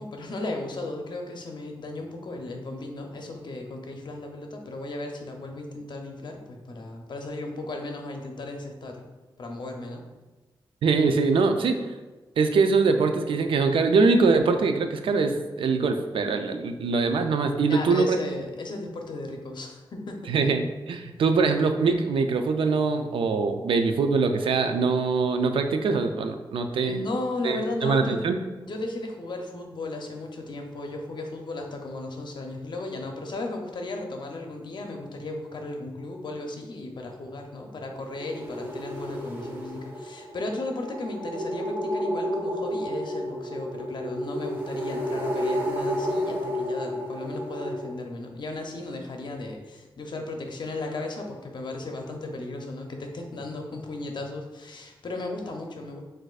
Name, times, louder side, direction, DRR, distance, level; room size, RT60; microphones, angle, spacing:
voice 1, 0.0-9.0 9.4-10.0 17.7-20.3 26.8-28.2 28.6-56.0, left 2 dB, 60° left, 3 dB, 0.6 m, -35 dB
voice 2, 10.8-11.8 12.4-18.2 20.3-27.0 27.4-28.4, right 4 dB, 85° right, 7 dB, 0.4 m, -23 dB
sound 1, 38.0-47.9, equal, 25° right, 0.9 m, -31 dB
6.2 x 2.5 x 2.4 m, 1.2 s
cardioid pair, 80°, 9 cm